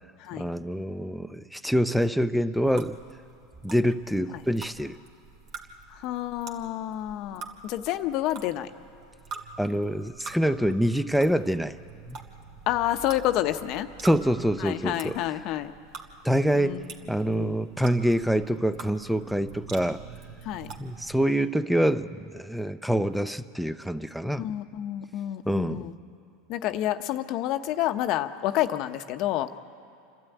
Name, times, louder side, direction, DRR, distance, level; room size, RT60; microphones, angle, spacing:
voice 1, 0.3-3.0 3.6-5.0 9.6-11.7 12.1-12.2 14.0-15.2 16.2-16.8 17.1-20.0 20.8-24.5 25.5-25.9, equal, ahead, 13 dB, 0.7 m, -26 dB
sound 1, 2.7-21.2, right 5 dB, 55° right, 2.3 m, -46 dB
voice 2, 5.9-8.7 12.7-13.9 14.6-15.7 16.5-16.8 17.2-17.6 20.4-20.7 24.4-25.9 26.5-29.5, left 13 dB, 55° left, 9 dB, 0.9 m, -29 dB
28.5 x 12.5 x 9.2 m, 2.5 s
supercardioid pair, 110°, 0 cm